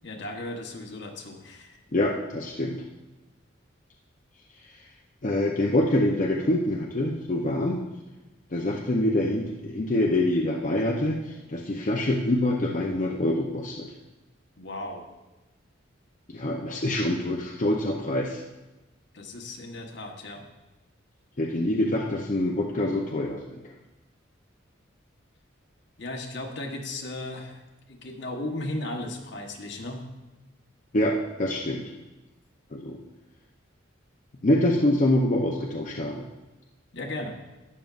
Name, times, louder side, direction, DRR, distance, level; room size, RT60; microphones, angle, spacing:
voice 1, 0.0-1.8 14.6-15.1 19.1-20.4 26.0-27.6 27.9-30.0 36.9-37.4, left 1 dB, 60° left, 2 dB, 1.1 m, -36 dB
voice 2, 1.9-2.8 5.2-7.8 8.5-13.9 16.3-18.4 21.4-23.4 30.9-31.8 32.7-33.0 34.4-36.3, left 1 dB, 40° left, -1 dB, 0.6 m, -25 dB
12.0 x 9.1 x 2.5 m, 1.1 s
head